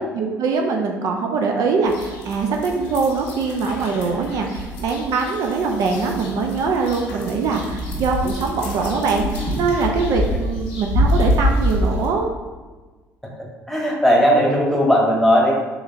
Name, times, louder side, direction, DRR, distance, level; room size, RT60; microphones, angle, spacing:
voice 1, 0.0-12.3, right 4 dB, 65° right, 2 dB, 0.4 m, -22 dB
sound 1, 1.9-12.1, equal, 90° left, 0.8 m, -26 dB
voice 2, 13.7-15.6, equal, ahead, -2 dB, 1.1 m, -16 dB
3.9 x 3.1 x 2.5 m, 1.3 s
supercardioid pair, 65°, 7 cm